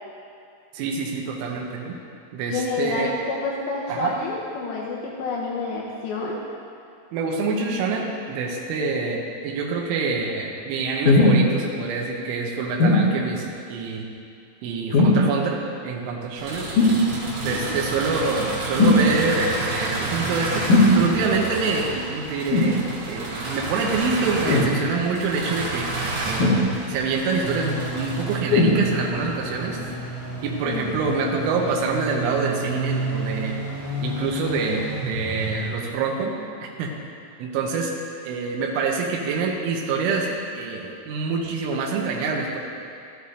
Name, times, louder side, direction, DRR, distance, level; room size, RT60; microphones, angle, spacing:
voice 1, 0.7-2.0 2.3-3.1 3.9-4.1 7.1-14.1 14.6-16.7 17.4-20.6 20.9-25.9 26.3-29.8 30.4-33.6 34.0-36.4 36.6-36.9 37.4-37.9 38.3-42.6, right 4 dB, 90° right, -1 dB, 3.3 m, -26 dB
voice 2, 2.5-6.4 17.2-17.7 30.6-31.0, left 4 dB, 80° left, -3 dB, 2.8 m, -29 dB
sound 1, 11.0-11.4 12.8-13.0 14.9-15.3 16.8-17.0 18.8-19.0 20.7-20.9 22.5-22.8 24.5-24.7 26.4-27.0 28.5-28.8 29.6-29.7, left 2 dB, 50° left, 2.7 m, -17 dB
sound 2, 16.4-28.4, right 2 dB, 65° right, 2.9 m, -30 dB
sound 3, 27.4-35.7, right 2 dB, 35° right, 2.6 m, -31 dB
12.5 x 8.2 x 2.6 m, 2.4 s
omnidirectional pair, 5.6 m